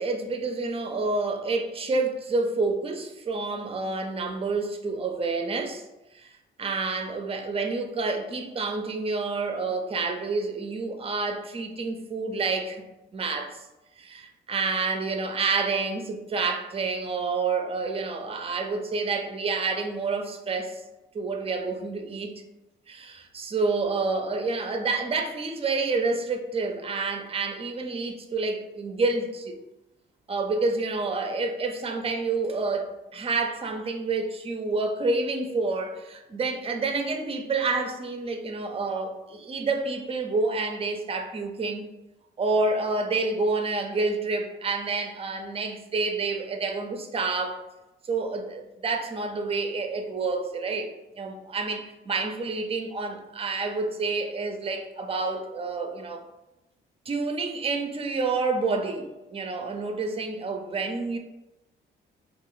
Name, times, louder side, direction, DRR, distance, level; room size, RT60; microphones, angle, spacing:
voice 1, 0.0-5.8 6.1-6.3 6.6-12.8 13.1-13.6 14.0-20.8 21.1-22.3 22.9-29.6 30.3-41.9 42.4-47.6 48.0-56.2 57.1-61.2, right 3 dB, 30° right, 5 dB, 0.5 m, -28 dB
3.0 x 2.4 x 3.9 m, 0.97 s
cardioid pair, 90°, 20 cm